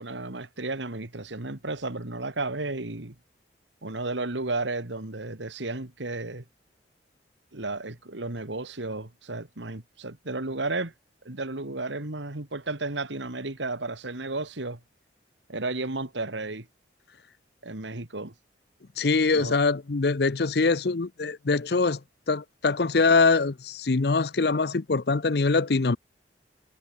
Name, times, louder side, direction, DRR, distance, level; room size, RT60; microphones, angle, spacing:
voice 1, 0.0-3.2 3.8-6.4 7.5-10.9 11.2-14.8 15.5-16.7 17.6-18.3 19.3-19.6, right 2 dB, 80° right, 2.2 m, -33 dB
voice 2, 19.0-22.0 22.3-26.0, left 4 dB, 60° left, 0.7 m, -23 dB
head